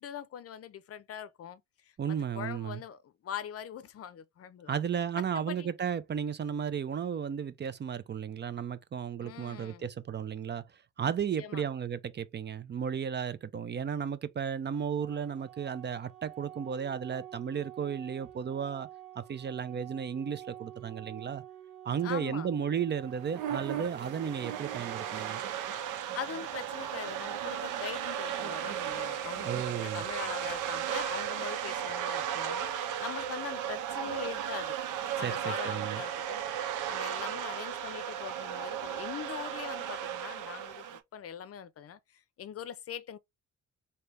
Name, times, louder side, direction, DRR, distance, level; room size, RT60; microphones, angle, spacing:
voice 1, 0.0-1.6 2.1-4.8 5.2-5.7 9.2-9.9 11.4-11.6 22.0-22.5 26.1-34.8 35.2-36.4 36.9-42.0 42.4-43.2, left 8 dB, 50° left, 0.6 m, -42 dB
voice 2, 2.0-2.8 4.7-10.6 11.0-18.9 19.2-21.4 21.8-25.4 29.4-30.0 35.2-36.0, right 7 dB, 35° right, 0.5 m, -34 dB
Organ, 15.0-26.0, right 12 dB, 55° right, 1.6 m, -49 dB
sound 1, 23.1-41.0, right 10 dB, 85° right, 0.7 m, -35 dB
3.3 x 2.8 x 3.1 m
cardioid pair, 90°, 30 cm